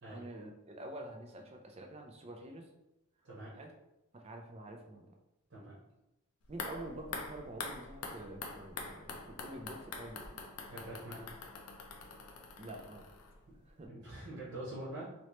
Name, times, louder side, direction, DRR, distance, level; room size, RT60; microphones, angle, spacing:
voice 1, 0.1-2.7 3.5-3.7 4.1-5.1 6.5-10.4 12.6-13.0 13.6-13.9, right 1 dB, 25° right, 2 dB, 0.4 m, -47 dB
sound 1, 6.4-13.6 13.8-13.9, left 4 dB, 85° left, 0.5 m, -45 dB
voice 2, 10.7-11.2 13.9-15.1, right 1 dB, 55° right, -7 dB, 1.1 m, -44 dB
3.0 x 2.9 x 3.1 m, 0.94 s
head